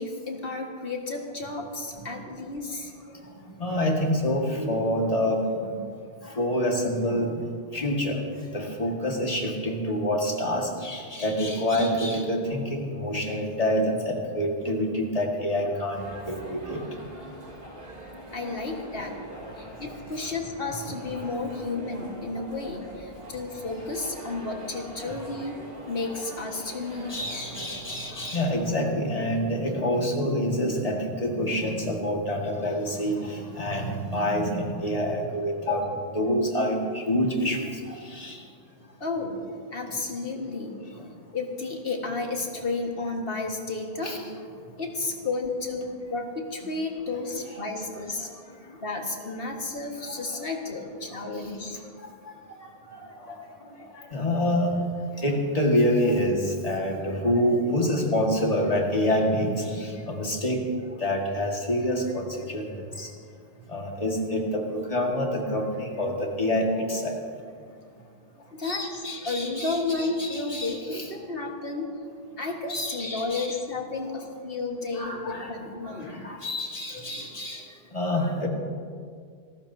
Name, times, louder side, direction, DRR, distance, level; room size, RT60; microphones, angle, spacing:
voice 1, 0.0-2.9 18.3-19.2 19.6-25.6 25.9-27.2 35.6-35.9 39.0-39.4 39.7-40.8 41.3-44.1 44.8-48.3 48.7-51.8 68.5-69.0 69.3-71.9 72.4-76.2, left 3 dB, 65° left, 2 dB, 1.8 m, -32 dB
voice 2, 3.6-5.7 6.4-7.5 7.7-8.2 8.5-16.8 20.2-20.3 25.0-25.2 27.1-35.8 36.2-37.7 38.1-38.4 44.0-44.2 50.3-50.4 53.3-53.4 54.1-54.7 55.2-60.6 61.0-62.7 63.0-63.1 63.7-67.1 68.6-71.1 72.7-73.6 74.9-75.5 75.8-77.6 77.9-78.5, equal, 35° left, 0 dB, 1.9 m, -27 dB
sound 1, 15.9-28.6, right 1 dB, 65° right, 3.4 m, -43 dB
27.5 x 14.0 x 2.7 m, 2.2 s
omnidirectional pair, 1.0 m